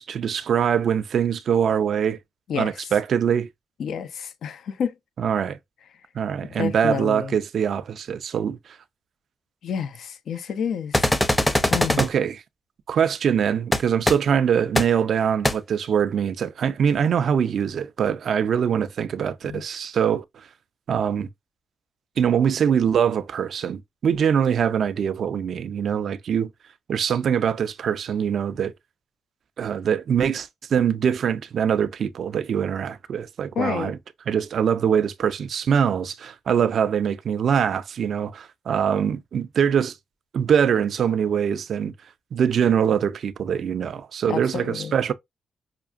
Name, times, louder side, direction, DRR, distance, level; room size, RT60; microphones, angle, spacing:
voice 1, 0.0-2.2 2.6-3.5 5.2-5.6 6.1-8.6 12.0-12.4 12.9-20.2 20.9-21.3 22.2-26.5 26.9-28.7 29.6-34.0 34.3-39.9 40.3-41.9 42.3-45.1, right 8 dB, 65° right, 0.5 m, -23 dB
voice 2, 2.5-2.9 3.8-4.9 6.6-7.4 9.6-11.1 11.7-12.0 19.5-19.6 33.5-33.9 44.3-45.0, left 7 dB, 70° left, 0.6 m, -29 dB
sound 1, 10.9-12.1 13.7-13.8 14.1-14.2 14.8-14.9 15.4-15.5, left 1 dB, 10° left, 0.7 m, -20 dB
5.8 x 2.4 x 2.4 m
hypercardioid pair, 45°, 0 cm